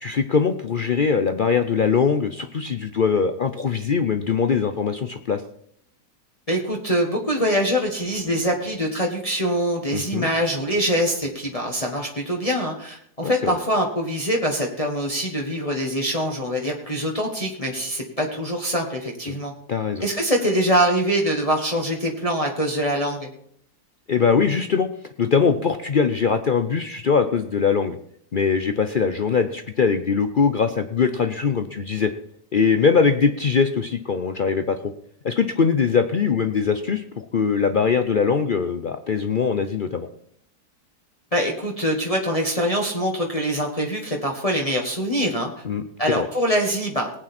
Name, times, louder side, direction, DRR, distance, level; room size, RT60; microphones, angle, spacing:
voice 1, 0.0-5.4 9.9-10.3 13.2-13.6 19.3-19.4 19.7-20.0 24.1-24.9 25.2-28.0 28.3-32.1 32.5-34.8 35.2-40.1 45.6-45.8 46.2-46.3, left 5 dB, 70° left, 8 dB, 0.4 m, -21 dB
voice 2, 6.5-19.5 20.0-23.3 41.3-45.5 46.0-47.1, equal, 25° left, 1 dB, 1.4 m, -24 dB
19.0 x 8.9 x 4.3 m, 0.67 s
omnidirectional pair, 1.8 m